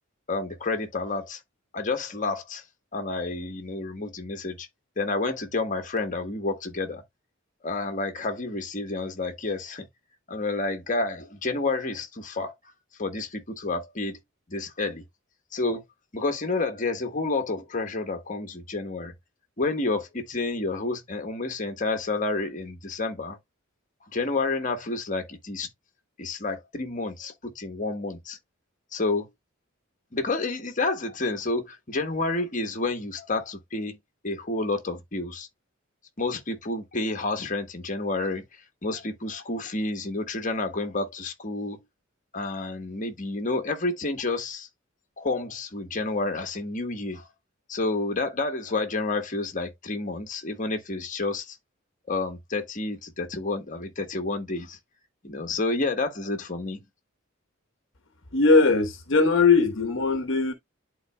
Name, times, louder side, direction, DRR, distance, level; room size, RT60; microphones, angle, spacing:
voice 1, 0.3-1.4 1.7-2.6 2.9-4.7 5.0-7.0 7.6-9.9 10.3-12.5 13.0-14.2 14.5-15.0 15.5-15.8 16.1-19.1 19.6-23.4 24.1-25.7 26.2-28.4 28.9-29.3 30.1-34.0 34.2-35.5 36.2-38.4 38.8-41.8 42.3-44.7 45.2-47.3 47.7-51.6 52.1-54.8 55.2-56.8, left 3 dB, 40° left, 1.2 m, -29 dB
voice 2, 58.3-60.5, left 4 dB, 65° left, 1.0 m, -20 dB
11.5 x 4.0 x 2.2 m
head